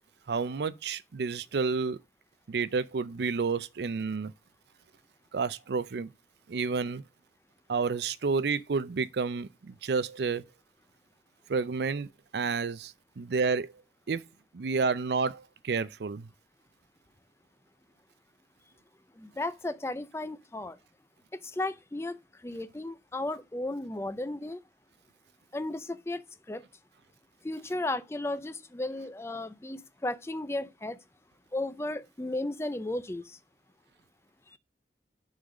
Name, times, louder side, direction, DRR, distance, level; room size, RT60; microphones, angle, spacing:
voice 1, 0.3-2.0 2.5-4.3 5.3-6.1 6.5-7.0 7.7-10.4 11.5-13.7 14.1-14.2 14.5-16.3, right 4 dB, 70° right, 0.4 m, -30 dB
voice 2, 19.2-20.8 21.4-24.6 25.5-26.2 26.5-26.6 27.4-31.0 31.5-33.4 34.5-34.6, left 2 dB, 15° left, 0.4 m, -34 dB
6.3 x 4.0 x 4.8 m
head